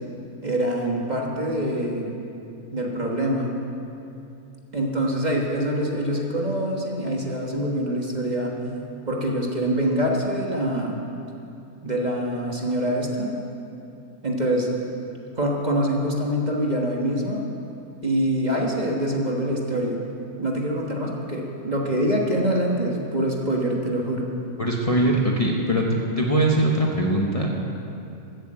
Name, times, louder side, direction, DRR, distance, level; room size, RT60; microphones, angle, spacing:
voice 1, 0.4-2.2 2.7-3.5 4.7-8.5 9.1-11.0 11.8-13.3 14.2-14.7 15.4-17.4 18.0-20.0 20.4-24.3, right 1 dB, 35° right, -1 dB, 1.4 m, -25 dB
voice 2, 24.6-25.9 26.2-27.5, right 1 dB, 30° left, -2 dB, 1.1 m, -21 dB
14.0 x 8.1 x 7.8 m, 2.8 s
omnidirectional pair, 1.4 m